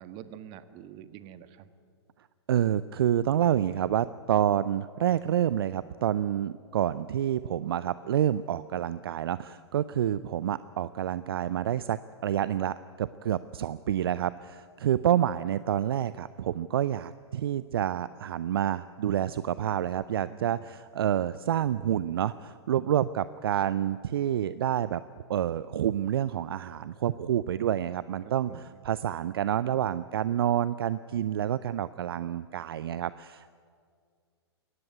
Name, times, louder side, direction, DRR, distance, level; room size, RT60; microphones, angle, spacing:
voice 1, 0.0-1.7 20.3-20.7 28.2-28.8, right 10 dB, 35° right, 12 dB, 1.4 m, -46 dB
voice 2, 2.5-25.0 25.3-33.5, right 10 dB, 60° right, 16 dB, 0.6 m, -28 dB
22.5 x 18.0 x 9.5 m, 2.1 s
figure-of-eight pair, 110°, 14 cm